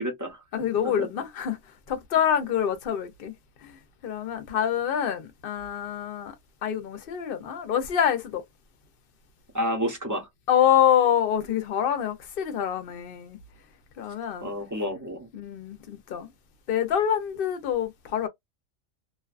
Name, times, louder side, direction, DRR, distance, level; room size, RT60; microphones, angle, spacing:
voice 1, 0.0-1.1 9.5-10.3 14.4-15.3, equal, 20° right, 0.5 m, -30 dB
voice 2, 0.5-1.6 1.9-3.3 3.6-3.7 4.0-6.3 6.6-8.4 10.5-13.4 14.0-14.5 15.3-16.3 16.7-18.3, left 9 dB, 55° left, 0.7 m, -26 dB
2.5 x 2.2 x 2.3 m
omnidirectional pair, 1.4 m